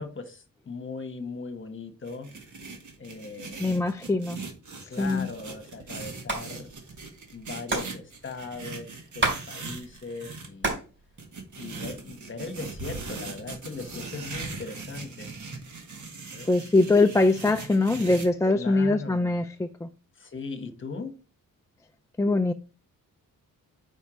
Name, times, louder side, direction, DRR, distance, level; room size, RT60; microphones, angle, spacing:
voice 1, 0.0-2.3 3.0-3.6 4.9-6.7 7.3-10.8 11.6-15.3 16.3-16.5 18.5-19.4 20.2-21.1, left 4 dB, 35° left, 1.3 m, -39 dB
sound 1, 2.0-10.5 11.2-18.3, right 4 dB, 60° right, 1.9 m, -40 dB
voice 2, 3.6-4.4 5.0-5.3 16.5-19.9 22.2-22.5, left 2 dB, 10° left, 0.3 m, -23 dB
Hands, 6.3-6.4 6.7-6.8 7.0-9.4 9.7-10.9 11.2-12.0 12.6-13.2, right 2 dB, 35° right, 3.7 m, -30 dB
5.4 x 4.5 x 5.0 m
wide cardioid pair, 120°, 34 cm